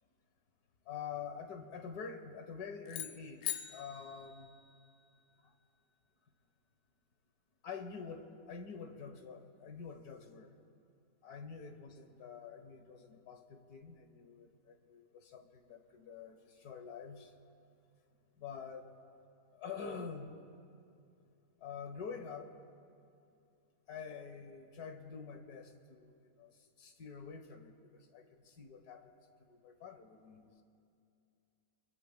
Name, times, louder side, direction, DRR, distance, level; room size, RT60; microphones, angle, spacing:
voice 1, 0.9-4.5 7.6-10.5 11.2-17.3 18.4-18.9 19.5-20.4 21.6-22.5 23.9-26.5 26.8-29.1 29.4-30.6, left 6 dB, 80° left, 6 dB, 1.7 m, -47 dB
sound 1, 2.9-5.2, left 11 dB, 60° left, 0.8 m, -43 dB
26.5 x 22.0 x 2.2 m, 2.5 s
omnidirectional pair, 1.6 m